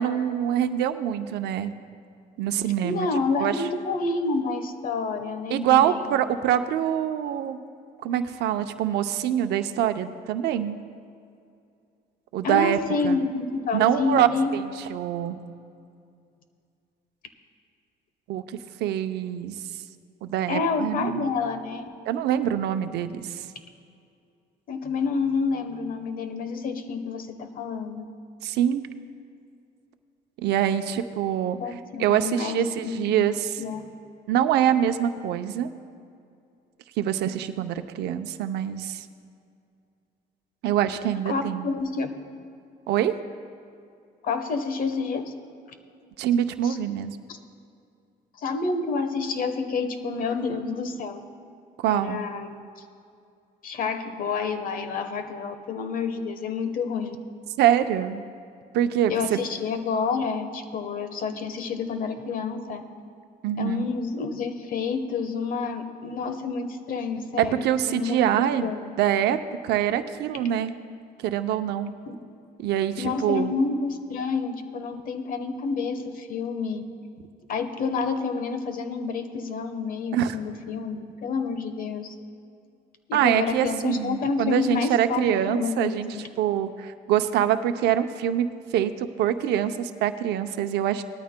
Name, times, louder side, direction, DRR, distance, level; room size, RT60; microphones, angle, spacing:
voice 1, 0.0-1.7 2.4-3.1 3.4-3.5 5.5-7.6 8.0-10.8 12.3-12.8 13.0-13.2 13.7-14.6 14.9-15.4 18.3-19.5 20.2-21.3 22.1-23.5 28.4-28.8 30.4-31.6 32.0-33.6 34.3-35.7 37.0-39.1 40.6-41.7 42.9-43.1 46.2-47.2 51.8-52.2 57.6-58.2 58.7-59.4 63.4-63.9 67.4-69.4 69.6-70.7 71.2-71.9 72.6-73.5 80.1-80.4 83.1-86.1 86.4-91.0, right 10 dB, 80° right, 9 dB, 0.7 m, -24 dB
voice 2, 2.8-6.1 12.4-14.5 20.5-21.9 24.7-28.0 31.6-33.3 33.6-33.8 41.3-42.1 44.2-45.3 46.6-46.8 47.3-47.4 48.4-51.2 51.9-52.7 53.6-57.2 59.1-62.8 63.6-68.3 68.6-68.9 72.1-72.2 73.0-76.8 77.5-82.1 83.1-86.3, left 4 dB, 55° left, 9 dB, 1.1 m, -29 dB
19.0 x 13.0 x 2.2 m, 2.4 s
cardioid pair, 110°, 17 cm